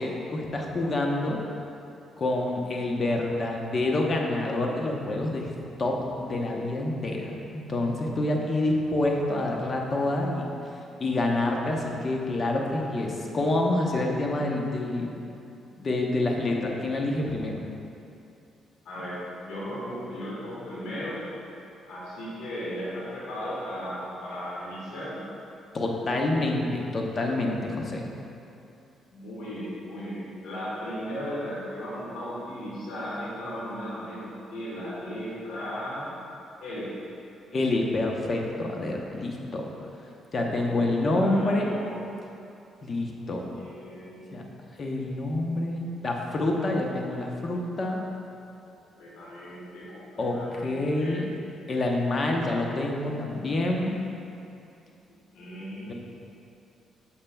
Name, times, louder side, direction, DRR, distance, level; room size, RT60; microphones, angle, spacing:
voice 1, 0.0-1.4 2.2-5.5 5.8-10.4 11.0-15.1 15.8-17.6 25.7-28.1 37.5-39.6 40.3-41.7 42.8-43.5 44.3-44.4 44.8-48.0 50.2-51.2 51.7-53.9 55.9-56.0, left 2 dB, 40° left, 0 dB, 0.9 m, -27 dB
voice 2, 18.8-21.2 21.9-25.2 29.1-36.1 36.6-36.9 40.6-41.9 43.1-43.2 43.5-44.4 49.0-51.2 55.1-55.9, equal, 90° left, -8 dB, 1.5 m, -36 dB
8.8 x 6.6 x 2.3 m, 2.7 s
cardioid pair, 90°, 0 cm